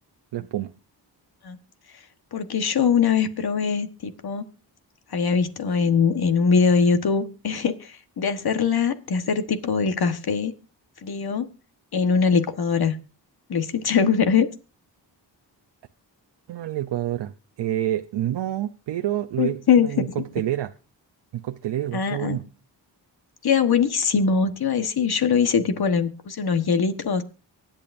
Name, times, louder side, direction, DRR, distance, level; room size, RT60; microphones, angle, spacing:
voice 1, 0.3-0.7 16.5-20.7 21.3-22.4, right 12 dB, 75° right, 0.7 m, -28 dB
voice 2, 2.3-4.4 5.1-10.5 11.0-11.5 11.9-13.0 13.5-14.5 19.4-20.1 21.9-22.4 23.4-27.2, left 6 dB, 60° left, 1.3 m, -22 dB
24.0 x 8.7 x 2.6 m
cardioid pair, 85°, 43 cm